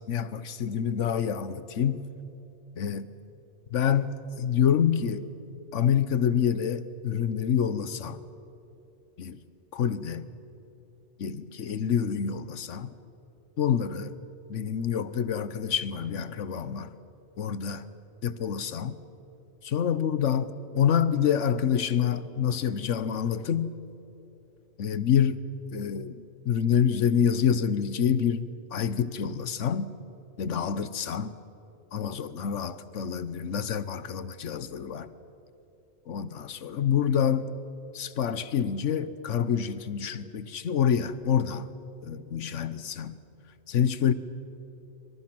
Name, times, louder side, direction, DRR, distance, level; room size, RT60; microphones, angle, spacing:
voice 1, 0.0-2.0 2.8-3.1 3.7-5.2 5.7-8.2 9.2-9.4 9.7-10.3 11.2-12.9 13.6-14.1 14.5-16.9 17.4-17.8 18.2-19.0 19.6-23.7 24.8-25.4 25.7-29.9 30.4-31.3 31.9-35.1 36.1-37.5 37.9-41.7 42.0-43.2 43.7-44.1, left 8 dB, 85° left, 1.3 m, -27 dB
25.5 x 25.5 x 6.1 m
omnidirectional pair, 1.2 m